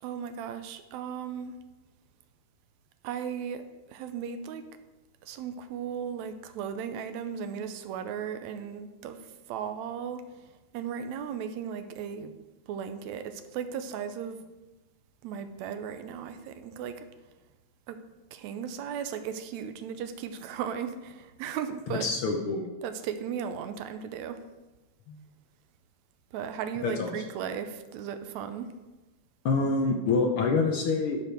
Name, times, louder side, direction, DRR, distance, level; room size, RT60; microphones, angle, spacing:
voice 1, 0.0-1.6 3.0-3.6 3.9-4.6 5.2-9.2 9.5-10.2 10.7-12.3 12.7-14.4 15.2-17.0 17.9-18.0 18.3-22.1 22.8-24.4 26.3-28.7, right 8 dB, 80° right, 8 dB, 1.9 m, -36 dB
voice 2, 21.9-22.7 25.1-25.2 26.8-27.1 29.4-31.2, left 4 dB, 70° left, 2 dB, 1.3 m, -26 dB
12.0 x 5.0 x 4.5 m, 1.1 s
omnidirectional pair, 3.3 m